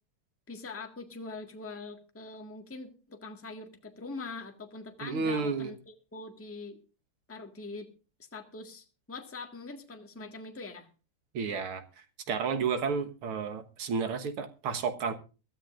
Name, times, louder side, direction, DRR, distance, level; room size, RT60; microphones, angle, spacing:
voice 1, 0.5-6.8 7.3-7.9 8.3-10.9, left 3 dB, 5° left, 1.5 m, -43 dB
voice 2, 5.0-5.7 11.3-11.8 12.3-15.1, right 5 dB, 90° right, 2.2 m, -31 dB
23.0 x 13.0 x 2.5 m
omnidirectional pair, 2.4 m